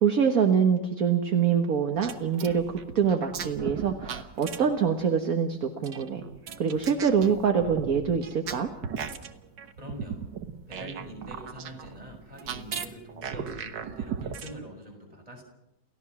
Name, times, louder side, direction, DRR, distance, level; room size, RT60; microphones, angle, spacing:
voice 1, 0.0-6.2 6.6-8.7, right 7 dB, 55° right, 5 dB, 1.8 m, -25 dB
sound 1, 2.0-4.9 5.8-14.6, right 7 dB, 80° right, 1.9 m, -38 dB
voice 2, 9.8-10.3 10.7-15.4, equal, 20° right, 0 dB, 6.4 m, -44 dB
29.0 x 15.5 x 6.1 m, 0.88 s
omnidirectional pair, 1.9 m